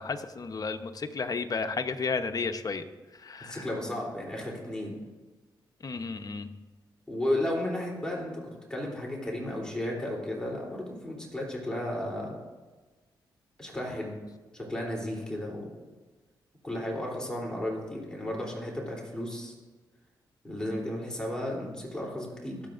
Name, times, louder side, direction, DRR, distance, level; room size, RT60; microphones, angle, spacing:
voice 1, 0.0-2.9 3.2-3.7 5.8-6.5, left 4 dB, 45° left, 8 dB, 0.9 m, -32 dB
voice 2, 3.4-5.0 7.1-12.4 13.6-14.1 14.5-15.7 16.6-19.5 20.4-22.6, left 1 dB, 10° left, -3 dB, 3.3 m, -34 dB
23.5 x 7.9 x 2.6 m, 1.3 s
cardioid pair, 65°, 9 cm